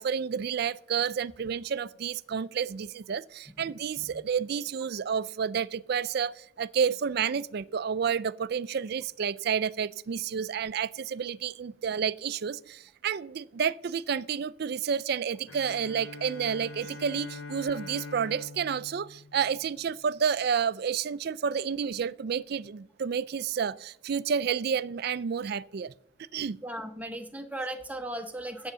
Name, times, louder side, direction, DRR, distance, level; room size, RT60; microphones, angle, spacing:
voice 1, 0.0-25.9 26.3-26.6, right 7 dB, 50° right, 0.3 m, -30 dB
Bowed string instrument, 15.5-20.2, left 3 dB, 80° left, 0.8 m, -44 dB
voice 2, 26.6-28.7, right 1 dB, 5° right, 0.9 m, -37 dB
8.8 x 7.9 x 6.7 m
head